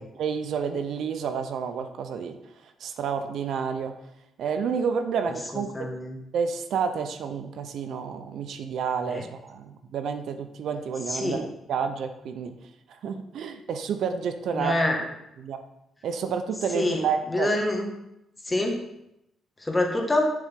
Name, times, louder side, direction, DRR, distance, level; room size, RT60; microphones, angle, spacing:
voice 1, 0.0-2.4 2.8-3.9 4.4-5.9 6.3-12.5 13.0-15.0 15.4-15.6 16.0-17.5, right 6 dB, 70° right, 8 dB, 0.6 m, -30 dB
voice 2, 5.5-6.2 9.1-9.2 11.1-11.4 14.5-15.0 16.7-17.0 17.3-17.9 18.4-18.8 19.6-20.3, left 1 dB, 15° left, 2 dB, 1.5 m, -26 dB
7.0 x 6.5 x 3.6 m, 0.83 s
cardioid pair, 90°, 0 cm